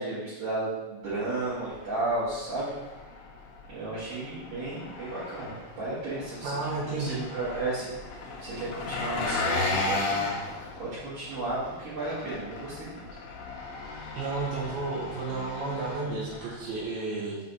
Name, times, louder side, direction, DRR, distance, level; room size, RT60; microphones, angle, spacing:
voice 1, 0.0-2.7 3.7-6.6 6.9-8.0 8.4-10.2 10.8-13.0, right 2 dB, 55° right, -14 dB, 3.6 m, -33 dB
Engine, 1.0-16.8, left 3 dB, 70° left, 2.2 m, -36 dB
voice 2, 6.4-7.2 14.1-17.4, right 3 dB, 70° right, -6 dB, 3.4 m, -32 dB
7.9 x 6.1 x 2.8 m, 1.2 s
omnidirectional pair, 5.8 m